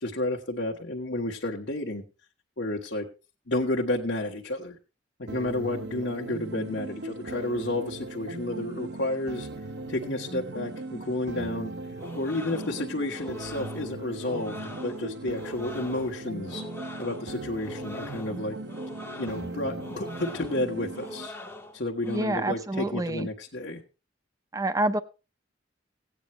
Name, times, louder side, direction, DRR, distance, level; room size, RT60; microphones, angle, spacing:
voice 1, 0.0-2.0 2.6-3.1 3.5-4.8 5.2-9.5 9.9-11.7 12.1-16.6 17.0-18.6 19.2-21.3 21.7-23.8, left 2 dB, 70° left, -2 dB, 1.3 m, -31 dB
sound 1, 5.3-21.3, right 2 dB, 65° right, 0.9 m, -38 dB
sound 2, 12.0-22.2, left 1 dB, 15° left, 0.8 m, -43 dB
voice 2, 22.1-23.3 24.5-25.0, right 2 dB, 20° right, 12 dB, 0.6 m, -27 dB
17.0 x 9.0 x 3.1 m, 0.31 s
head